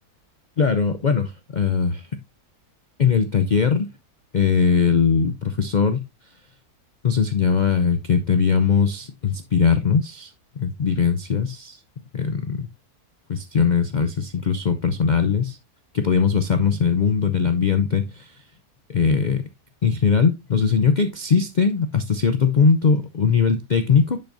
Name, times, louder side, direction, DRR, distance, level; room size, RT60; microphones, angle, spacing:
voice 1, 0.6-2.2 3.0-3.9 4.3-6.1 7.0-11.8 12.1-12.7 13.3-15.6 15.9-18.4 18.9-19.4 19.8-24.2, left 6 dB, 80° left, 0.4 m, -20 dB
10.0 x 5.5 x 2.6 m
omnidirectional pair, 1.6 m